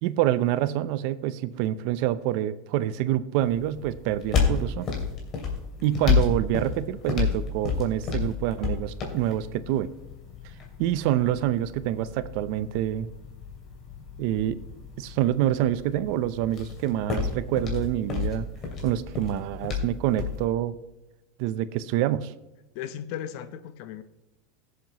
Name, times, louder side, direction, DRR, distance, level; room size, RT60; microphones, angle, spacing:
voice 1, 0.0-4.9 5.8-9.9 10.8-13.1 14.2-14.6 15.0-18.5 18.8-20.7 21.4-22.3, right 12 dB, 60° right, 15 dB, 0.6 m, -26 dB
sound 1, 3.4-20.4, left 6 dB, 35° left, 2.7 m, -31 dB
voice 2, 5.8-6.3 22.7-24.0, left 10 dB, 60° left, 12 dB, 0.8 m, -37 dB
17.5 x 7.6 x 3.0 m, 1.0 s
supercardioid pair, 145°, 0 cm